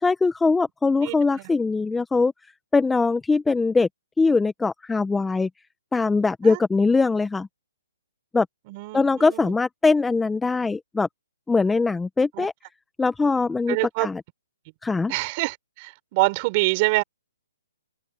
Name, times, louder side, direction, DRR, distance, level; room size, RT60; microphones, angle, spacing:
voice 1, 0.0-2.3 2.7-3.9 4.2-5.5 5.9-7.5 8.3-8.5 8.9-11.1 11.5-12.5 13.0-14.2 14.8-15.1, left 4 dB, 5° left, 0.5 m, -21 dB
voice 2, 8.7-9.5 12.3-12.5 13.7-14.1 15.1-17.0, right 25 dB, 25° right, 5.4 m, -25 dB
open air
hypercardioid pair, 165°, 0 cm